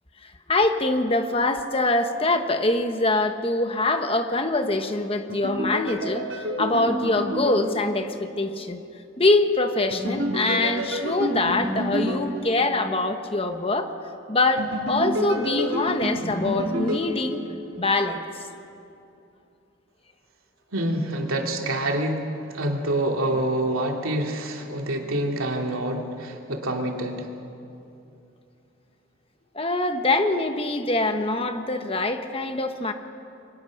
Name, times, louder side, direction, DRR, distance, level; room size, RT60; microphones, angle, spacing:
voice 1, 0.2-6.2 6.6-8.8 9.2-13.9 14.3-17.4 17.8-18.2 29.5-32.9, left 2 dB, 25° left, 7 dB, 1.2 m, -24 dB
sound 1, 5.3-8.4 9.9-13.1 14.6-17.9, equal, 70° right, 4.8 m, -29 dB
voice 2, 20.7-22.2 22.5-27.3, right 1 dB, 90° right, 2 dB, 2.9 m, -26 dB
28.5 x 23.0 x 6.5 m, 2.7 s
head